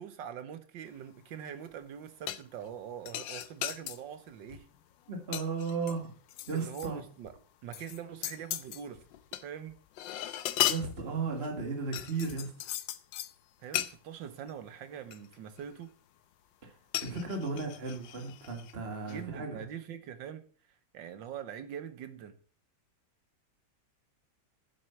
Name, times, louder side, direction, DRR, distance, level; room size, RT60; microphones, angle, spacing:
voice 1, 0.0-4.7 6.5-7.3 7.6-9.1 9.4-9.7 13.6-15.9 19.1-20.4 20.9-22.4, right 9 dB, 85° right, 1.7 m, -43 dB
sound 1, 2.3-2.7 3.1-4.0 4.5-4.8 5.1-6.9 7.2-7.3 7.7-9.4 9.7-11.5 11.9-13.3 13.7-13.9 14.5-14.6 15.1-15.8 16.9-18.7 19.1-19.2, left 12 dB, 80° left, 1.4 m, -36 dB
voice 2, 5.1-6.1 6.5-7.0 10.4-12.7 16.6-16.8 17.0-19.7, right 4 dB, 35° right, 2.1 m, -35 dB
8.8 x 7.8 x 6.9 m
omnidirectional pair, 2.0 m